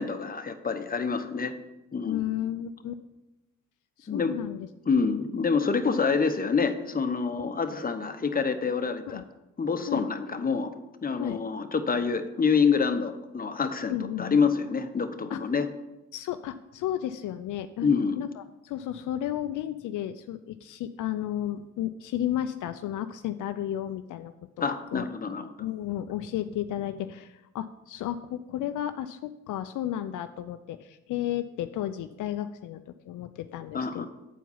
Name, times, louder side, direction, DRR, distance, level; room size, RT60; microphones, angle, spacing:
voice 1, 0.0-1.5 1.9-2.2 4.1-4.3 4.9-9.2 9.6-10.7 11.0-15.7 17.8-18.2 24.6-25.5 33.7-34.1, left 5 dB, 30° left, 8 dB, 0.8 m, -27 dB
voice 2, 2.1-2.9 4.0-4.7 7.4-7.5 9.1-9.2 9.9-10.0 11.2-11.4 13.9-14.4 15.3-15.4 16.1-17.9 18.2-25.1 25.6-34.1, left 11 dB, 75° left, 10 dB, 0.4 m, -33 dB
8.0 x 4.6 x 5.6 m, 0.96 s
supercardioid pair, 55°, 31 cm